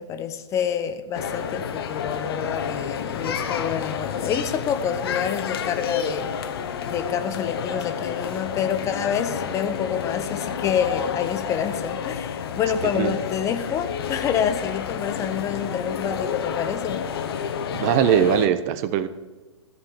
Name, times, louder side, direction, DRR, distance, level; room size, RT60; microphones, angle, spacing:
voice 1, 0.0-6.3 6.9-17.0, left 8 dB, 20° left, 10 dB, 0.7 m, -27 dB
sound 1, 1.1-18.5, left 7 dB, 55° left, 1.1 m, -30 dB
voice 2, 17.7-19.1, right 9 dB, 35° right, 13 dB, 0.7 m, -20 dB
14.0 x 5.6 x 8.8 m, 1.2 s
figure-of-eight pair, 120°, 15 cm